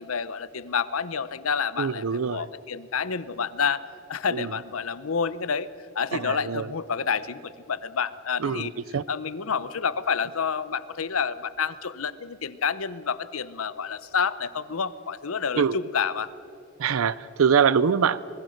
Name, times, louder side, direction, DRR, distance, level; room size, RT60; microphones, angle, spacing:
voice 1, 0.0-3.8 4.1-5.7 5.9-8.7 9.1-16.3, left 6 dB, 85° left, 16 dB, 0.8 m, -29 dB
voice 2, 1.8-2.4 4.3-4.5 6.1-6.7 8.4-9.0 15.6-15.8 16.8-18.2, right 6 dB, 90° right, 19 dB, 0.5 m, -24 dB
25.5 x 21.0 x 6.5 m, 2.7 s
head